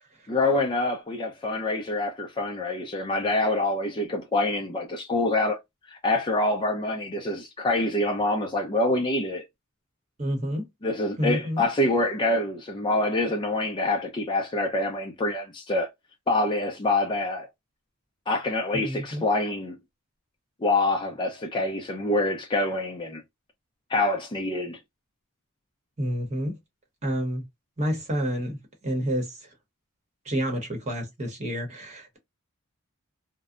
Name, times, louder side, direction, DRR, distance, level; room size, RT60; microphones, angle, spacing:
voice 1, 0.3-5.6 5.9-9.4 10.8-15.9 16.3-17.5 18.3-19.8 20.6-23.2 23.9-24.8, left 2 dB, 20° left, 0.4 m, -26 dB
voice 2, 10.2-10.6 11.2-11.6 18.8-19.2 26.0-26.5 27.0-27.4 27.8-28.6 28.8-29.3 30.3-32.2, equal, 30° right, 0.9 m, -29 dB
2.6 x 2.0 x 2.4 m
head